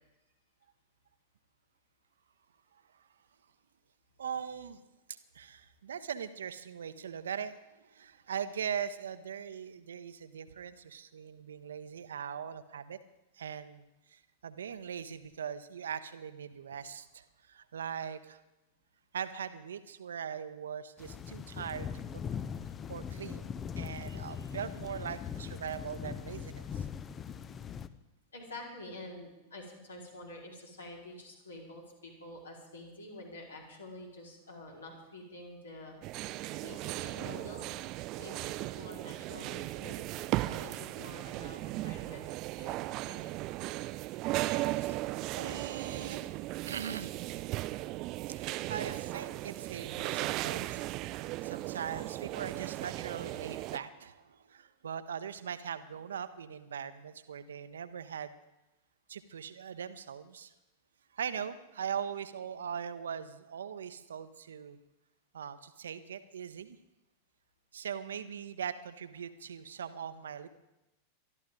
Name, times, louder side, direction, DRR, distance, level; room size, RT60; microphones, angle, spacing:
voice 1, 4.2-4.8 5.1-13.0 13.3-18.4 19.1-21.9 22.1-22.2 22.9-26.9 44.7-45.0 45.3-46.4 46.7-47.5 48.3-50.8 51.4-58.3 59.1-60.5 61.1-64.8 65.3-66.8 67.7-70.5, right 8 dB, 65° right, 12 dB, 0.9 m, -41 dB
sound 1, 21.0-27.9, left 7 dB, 25° left, 0.7 m, -40 dB
voice 2, 27.1-27.8 28.3-35.9 36.5-37.7 38.2-42.3 42.6-43.4, left 1 dB, 70° left, -1 dB, 4.4 m, -48 dB
sound 2, 36.0-53.8, right 18 dB, 40° right, 0.6 m, -37 dB
23.0 x 13.0 x 3.8 m, 0.96 s
figure-of-eight pair, 90°, 0 cm